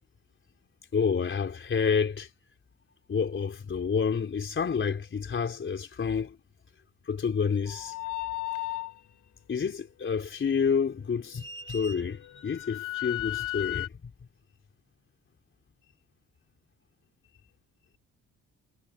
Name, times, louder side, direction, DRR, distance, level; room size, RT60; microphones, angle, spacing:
voice 1, 0.9-2.3 3.1-6.4 7.0-7.9 9.5-13.9, left 6 dB, 40° left, 4.1 m, -29 dB
sound 1, 7.7-9.0 11.4-13.9, left 14 dB, 80° left, 3.1 m, -35 dB
cardioid pair, 90°, 30 cm